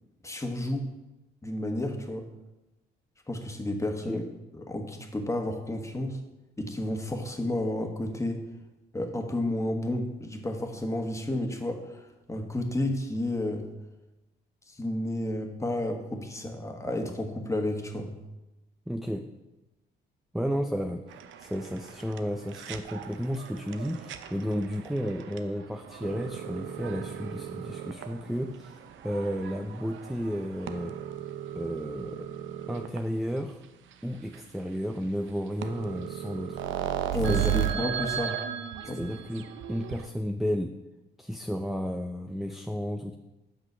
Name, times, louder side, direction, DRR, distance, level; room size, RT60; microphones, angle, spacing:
voice 1, 0.2-0.9 1.4-2.3 3.3-4.3 4.5-6.2 6.6-8.4 8.9-13.7 14.7-18.1 37.1-38.4 38.9-39.0, left 1 dB, 15° left, 4 dB, 1.4 m, -31 dB
voice 2, 18.9-19.2 20.3-28.8 29.0-31.0 31.5-32.3 32.7-33.6 34.0-36.6 37.3-37.5 38.9-40.7 41.2-43.2, equal, ahead, 5 dB, 0.5 m, -32 dB
sound 1, 21.1-33.0 33.6-33.7 33.9-34.0 34.3-34.4 35.3-35.4 35.6-40.1, right 10 dB, 75° right, 0.7 m, -36 dB
8.1 x 6.0 x 6.1 m, 1.0 s
cardioid pair, 90°, 20 cm